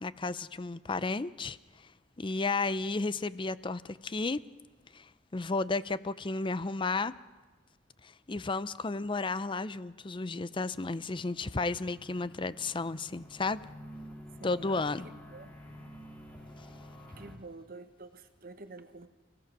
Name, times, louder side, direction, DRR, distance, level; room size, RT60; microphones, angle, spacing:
voice 1, 0.0-1.6 2.2-4.4 4.9-7.1 8.0-13.6 14.4-15.1, left 3 dB, 30° left, 16 dB, 0.6 m, -33 dB
sound 1, 10.3-17.4, equal, 10° left, 3.3 m, -50 dB
voice 2, 14.4-15.5 17.2-19.1, right 3 dB, 55° right, 9 dB, 1.1 m, -49 dB
30.0 x 17.0 x 6.1 m, 1.3 s
head